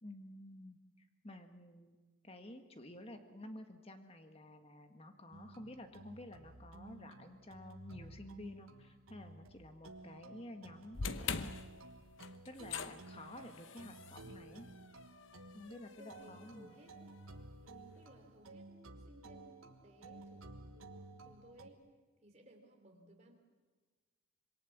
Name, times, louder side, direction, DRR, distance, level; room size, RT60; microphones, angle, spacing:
voice 1, 0.0-0.8 1.2-2.0 2.2-11.6 12.4-14.7 15.5-16.8, left 1 dB, 25° left, 6 dB, 1.6 m, -51 dB
sound 1, 5.3-21.7, right 2 dB, 75° right, 1.4 m, -54 dB
sound 2, 10.9-17.2, left 5 dB, 60° left, 0.9 m, -45 dB
voice 2, 15.7-17.2 17.6-21.8 22.2-23.3, right 1 dB, 30° right, 2 dB, 3.4 m, -60 dB
26.0 x 22.0 x 7.3 m, 1.3 s
head